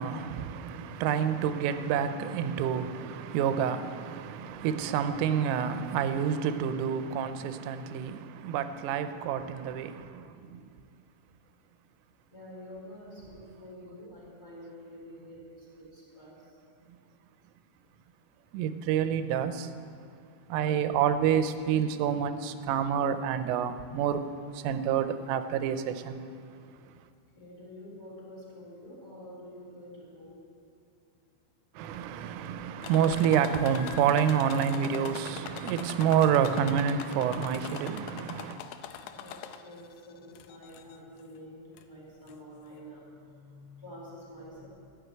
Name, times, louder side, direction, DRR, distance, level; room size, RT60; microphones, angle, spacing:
voice 1, 0.0-10.6 18.5-19.7 20.5-24.3 24.5-26.2 31.8-38.6, right 8 dB, 85° right, 3.2 m, -28 dB
voice 2, 10.1-10.5 12.3-16.5 21.1-21.2 27.3-30.5 39.1-44.7, equal, 10° left, 2.8 m, -48 dB
sound 1, 32.8-39.9 40.4-41.0 41.8-41.9 42.3-42.4, left 9 dB, 85° left, 3.0 m, -42 dB
15.0 x 6.6 x 9.0 m
omnidirectional pair, 5.8 m